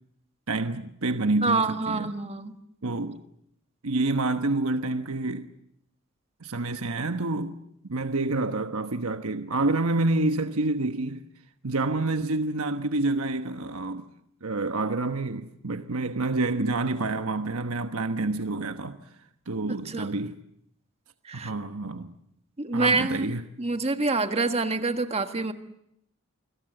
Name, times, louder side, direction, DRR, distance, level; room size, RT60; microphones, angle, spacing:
voice 1, 0.5-2.1 2.8-3.2 3.8-5.5 6.4-7.6 7.9-11.2 11.6-14.1 14.4-19.0 19.5-20.4 21.3-22.1 22.7-23.4, right 2 dB, 85° right, 1.2 m, -28 dB
voice 2, 1.4-2.5 19.7-20.1 21.2-21.5 22.6-25.5, right 3 dB, 30° right, 1.5 m, -27 dB
29.0 x 22.0 x 7.8 m
head